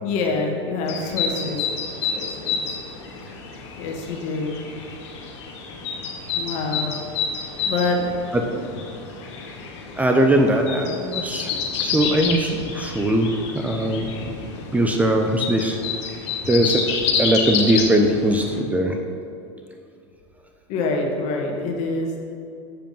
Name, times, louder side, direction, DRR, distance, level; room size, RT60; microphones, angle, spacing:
voice 1, 0.0-1.6 2.1-2.6 3.8-4.6 6.3-6.9 7.7-8.0 20.7-22.2, left 3 dB, 50° left, 1 dB, 1.7 m, -26 dB
sound 1, 0.9-18.6, left 5 dB, 75° left, 1.3 m, -29 dB
voice 2, 8.3-8.6 10.0-11.5 11.8-13.4 13.6-14.1 14.7-15.8 16.5-16.8 17.2-19.0, right 1 dB, 10° right, 3 dB, 0.6 m, -20 dB
7.7 x 7.0 x 5.4 m, 2.5 s
supercardioid pair, 125°, 15 cm